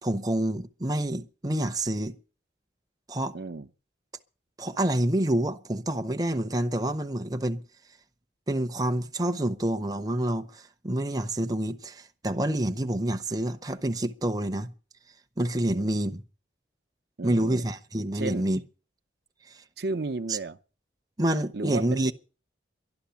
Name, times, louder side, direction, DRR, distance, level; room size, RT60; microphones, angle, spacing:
voice 1, 0.0-2.1 3.1-3.4 4.6-7.6 8.5-14.7 15.4-16.2 17.2-18.6 19.5-19.6 20.3-20.4 21.2-22.1, right 1 dB, 20° right, 0.7 m, -28 dB
voice 2, 3.3-3.7 15.7-16.0 17.2-17.7 18.1-18.4 19.8-20.6 21.5-22.1, right 3 dB, 60° right, 0.7 m, -33 dB
12.5 x 11.5 x 7.0 m
head